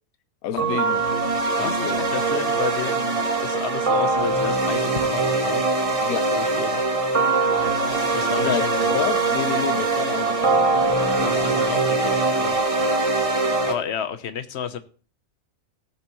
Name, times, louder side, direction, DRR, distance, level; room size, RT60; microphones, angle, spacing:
voice 1, 0.4-1.0 1.6-2.1 6.0-6.3 8.4-11.7, left 9 dB, 90° left, 1.1 m, -30 dB
sound 1, 0.6-13.7, right 3 dB, 25° right, 1.4 m, -22 dB
voice 2, 1.6-5.7 6.3-6.9 8.1-9.0 11.2-12.7 13.3-14.8, left 8 dB, 55° left, 1.2 m, -32 dB
18.5 x 7.2 x 3.1 m
omnidirectional pair, 1.5 m